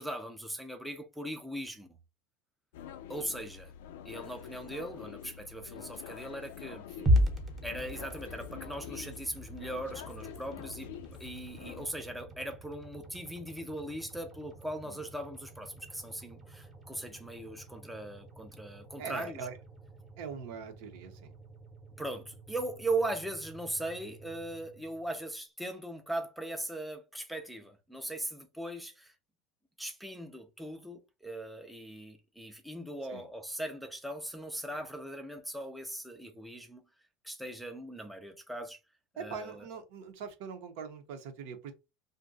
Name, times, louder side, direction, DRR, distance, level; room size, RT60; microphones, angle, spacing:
voice 1, 0.0-1.9 3.1-3.7 4.1-6.8 7.6-10.9 11.2-19.4 22.0-29.1 29.8-36.8 37.2-38.8 39.2-39.5, right 1 dB, ahead, 0.5 m, -39 dB
sound 1, 2.7-11.9, left 9 dB, 80° left, 0.4 m, -46 dB
sound 2, 7.1-25.3, equal, 20° right, 0.8 m, -38 dB
voice 2, 19.0-19.6 20.2-21.3 33.1-33.3 34.7-34.8 39.2-41.7, right 6 dB, 70° right, 0.8 m, -42 dB
2.5 x 2.2 x 3.8 m
supercardioid pair, 130°, 0 cm